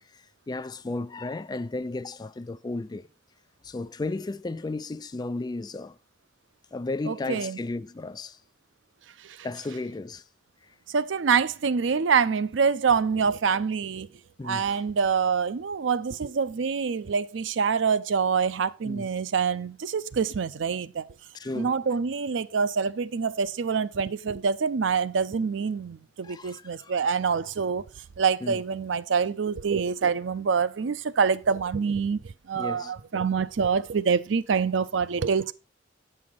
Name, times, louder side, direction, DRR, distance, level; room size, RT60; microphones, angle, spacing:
voice 1, 0.5-3.1 3.6-6.0 6.7-8.4 9.4-10.2 14.4-14.8 18.8-19.1 21.3-21.8 26.2-26.9 28.4-28.6 32.5-32.9, left 2 dB, 20° left, 0.4 m, -34 dB
voice 2, 7.0-7.6 9.2-9.4 10.9-14.1 14.4-21.1 21.5-27.8 28.2-32.2 32.5-35.5, right 6 dB, 90° right, 0.5 m, -26 dB
8.6 x 5.6 x 4.6 m
head